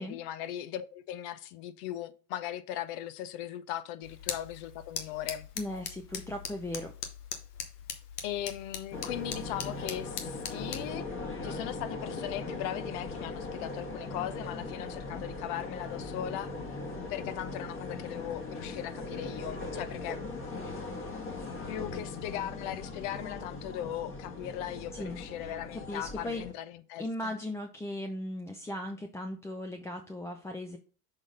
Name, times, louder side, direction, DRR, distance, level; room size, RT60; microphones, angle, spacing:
voice 1, 0.0-5.5 8.2-11.1 11.4-16.5 17.1-20.2 21.7-27.3, left 12 dB, 55° left, 0.8 m, -38 dB
sound 1, 4.0-10.9, left 8 dB, 75° left, 1.3 m, -41 dB
voice 2, 5.6-6.9 24.9-25.5 25.9-26.4 27.0-30.8, left 1 dB, 5° left, 0.5 m, -37 dB
sound 2, 8.9-26.5, left 3 dB, 25° left, 1.4 m, -39 dB
6.4 x 3.9 x 5.0 m
hypercardioid pair, 85°, 46 cm